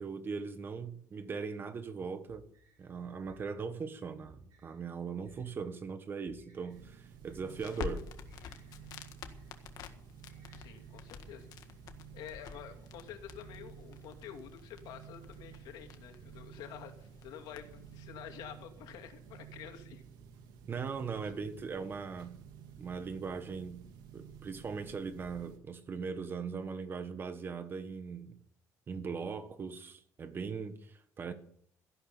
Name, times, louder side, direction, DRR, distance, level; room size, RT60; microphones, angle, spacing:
voice 1, 0.0-2.4 2.8-8.1 20.7-22.4 22.8-23.8 24.1-28.4 28.9-31.3, right 5 dB, 30° right, 1.6 m, -40 dB
sound 1, 2.3-14.0, right 2 dB, 60° right, 6.5 m, -64 dB
sound 2, 6.7-25.6, right 8 dB, 75° right, 2.0 m, -53 dB
Crackle, 7.4-18.0, left 7 dB, 65° left, 1.7 m, -48 dB
voice 2, 10.5-11.5 12.1-20.0, left 9 dB, 85° left, 2.6 m, -49 dB
14.5 x 11.0 x 7.0 m
cardioid pair, 145°, 7 cm